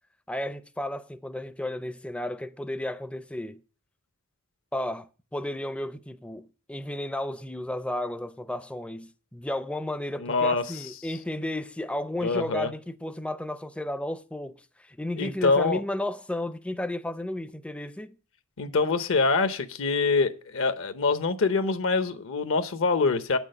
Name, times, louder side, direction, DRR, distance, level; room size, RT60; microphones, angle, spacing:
voice 1, 0.3-3.6 4.7-18.2, left 1 dB, 5° left, 0.5 m, -33 dB
voice 2, 10.2-10.7 12.2-12.7 15.2-15.8 18.6-23.4, left 4 dB, 65° left, 0.8 m, -25 dB
8.6 x 6.2 x 6.5 m
head